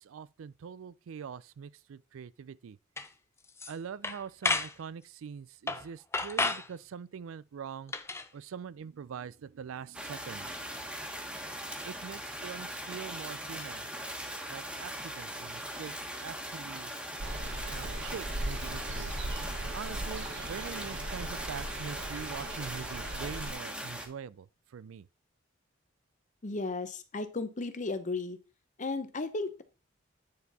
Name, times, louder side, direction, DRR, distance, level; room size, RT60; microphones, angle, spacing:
voice 1, 0.0-2.8 3.7-7.9 8.3-10.8 11.8-13.9 14.5-16.9 17.7-19.1 19.7-24.5 24.7-25.1, right 7 dB, 85° right, 0.4 m, -43 dB
sound 1, 3.0-3.1 3.5-3.7 4.0-4.7 5.7-5.9 6.1-6.7 7.9-8.3, left 3 dB, 15° left, 0.5 m, -31 dB
sound 2, 9.9-24.1, equal, 5° right, 1.3 m, -40 dB
sound 3, 17.2-23.5, right 1 dB, 65° right, 1.2 m, -38 dB
voice 2, 26.4-28.4 28.8-29.6, left 3 dB, 40° left, 0.8 m, -34 dB
9.5 x 4.3 x 4.1 m
head